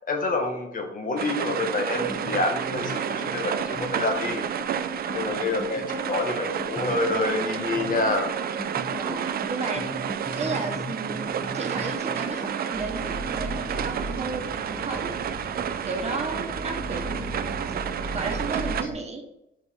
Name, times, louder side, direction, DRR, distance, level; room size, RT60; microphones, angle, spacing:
voice 1, 0.1-4.4 5.1-8.3, left 2 dB, 45° left, 3 dB, 1.4 m, -27 dB
sound 1, 1.2-18.8, right 9 dB, 50° right, 0.4 m, -31 dB
sound 2, 1.9-14.5 14.8-15.8 16.1-16.5 16.8-17.4, equal, 10° left, 1.6 m, -39 dB
voice 2, 5.0-5.4 8.8-9.8 10.4-15.1 15.8-17.4 18.1-19.2, right 3 dB, 35° right, 1 dB, 1.3 m, -33 dB
Bus, 12.7-18.9, right 1 dB, 10° right, 1.5 m, -36 dB
5.3 x 5.0 x 4.2 m, 0.84 s
cardioid pair, 90°, 20 cm